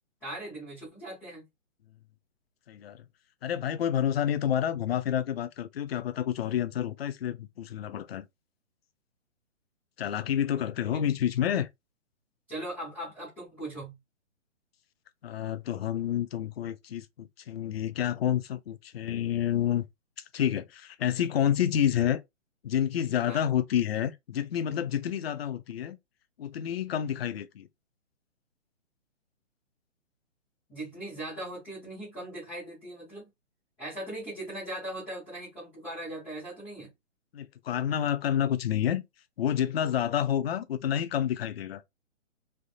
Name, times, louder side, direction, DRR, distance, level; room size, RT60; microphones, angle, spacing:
voice 1, 0.2-1.5 10.9-11.0 12.5-13.9 23.3-23.4 30.7-33.3 33.8-36.9, right 1 dB, 5° left, 0.5 m, -39 dB
voice 2, 2.7-3.0 3.4-8.2 10.0-11.7 15.2-19.8 20.3-22.2 22.6-26.0 26.4-27.7 37.3-39.0 39.4-41.8, left 10 dB, 50° left, 0.5 m, -29 dB
3.4 x 2.6 x 2.3 m
hypercardioid pair, 155°, 38 cm